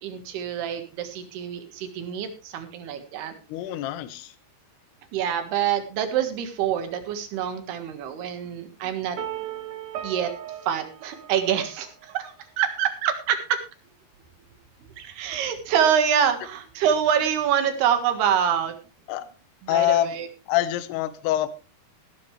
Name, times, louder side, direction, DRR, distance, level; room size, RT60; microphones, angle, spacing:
voice 1, 0.0-3.3 5.1-9.2 10.0-10.3 10.7-13.4 15.0-18.8 19.6-20.3, right 8 dB, 75° right, 7 dB, 3.6 m, -26 dB
voice 2, 3.5-4.3 19.1-19.3 19.7-20.1 20.5-21.5, left 14 dB, 80° left, 13 dB, 2.9 m, -25 dB
sound 1, 9.2-12.1, right 10 dB, 60° right, 2.4 m, -36 dB
16.5 x 11.5 x 3.3 m, 0.34 s
omnidirectional pair, 4.7 m